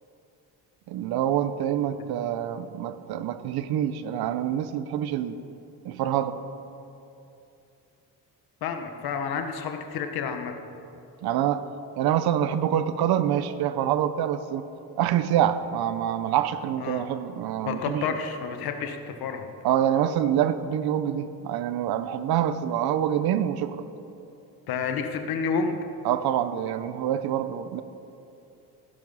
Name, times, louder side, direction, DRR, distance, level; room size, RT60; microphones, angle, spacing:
voice 1, 0.9-5.4 5.8-6.4 11.2-11.7 12.0-14.6 15.0-18.0 19.6-23.8 26.0-27.8, right 10 dB, 80° right, 12 dB, 0.9 m, -26 dB
voice 2, 8.6-10.5 16.8-17.1 17.6-19.5 24.7-25.8, left 6 dB, 75° left, 6 dB, 1.3 m, -30 dB
16.0 x 11.0 x 5.6 m, 2.8 s
cardioid pair, 165°, 37 cm